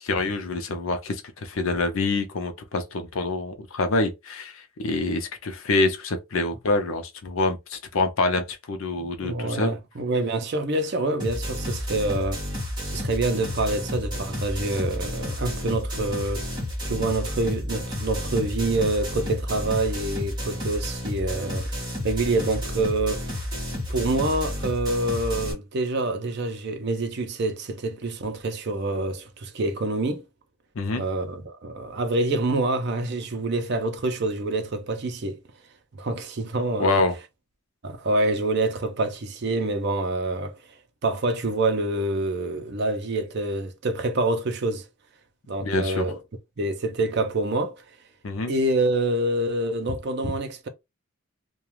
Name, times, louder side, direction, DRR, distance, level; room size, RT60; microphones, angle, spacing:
voice 1, 0.0-9.7 30.8-31.1 36.8-37.2 45.6-46.1 48.2-48.5, left 3 dB, 65° left, 0.5 m, -26 dB
voice 2, 9.0-12.4 12.9-16.5 16.8-23.5 23.9-30.2 30.9-35.4 36.0-37.0 37.8-40.6 41.0-44.9 45.5-46.2 46.6-47.8 48.5-50.7, right 2 dB, 50° right, 0.5 m, -26 dB
sound 1, 11.2-25.5, left 1 dB, 20° right, 1.0 m, -31 dB
2.3 x 2.2 x 3.0 m
head